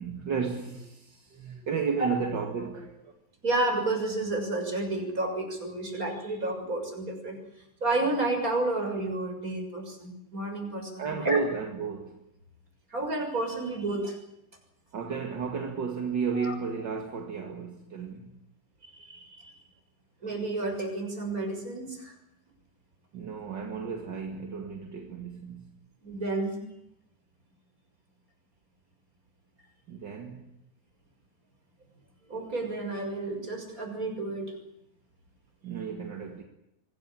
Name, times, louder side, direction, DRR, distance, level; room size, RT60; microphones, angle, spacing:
voice 1, 0.0-3.1 11.0-12.2 14.9-18.4 23.1-25.8 29.9-30.5 35.6-36.4, right 5 dB, 40° right, 2.1 m, -33 dB
voice 2, 3.4-7.4 7.8-11.4 12.9-14.2 16.3-16.5 18.9-19.5 20.2-22.1 26.0-26.6 32.3-34.5, right 2 dB, 20° right, 6.9 m, -31 dB
25.0 x 19.0 x 8.9 m
omnidirectional pair, 4.1 m